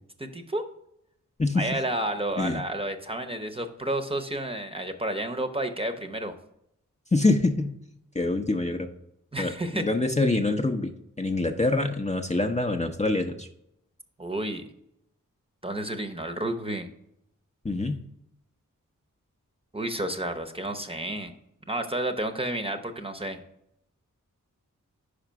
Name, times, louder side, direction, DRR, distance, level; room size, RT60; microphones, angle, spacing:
voice 1, 0.2-0.6 1.6-6.4 9.3-9.9 14.2-14.7 15.6-16.9 19.7-21.3 21.7-23.4, right 1 dB, 15° right, 5 dB, 0.8 m, -31 dB
voice 2, 7.1-7.7 8.1-8.9 9.4-13.5 17.6-18.0, left 2 dB, 20° left, 4 dB, 0.6 m, -25 dB
5.1 x 4.9 x 4.6 m, 0.78 s
cardioid pair, 45°, 32 cm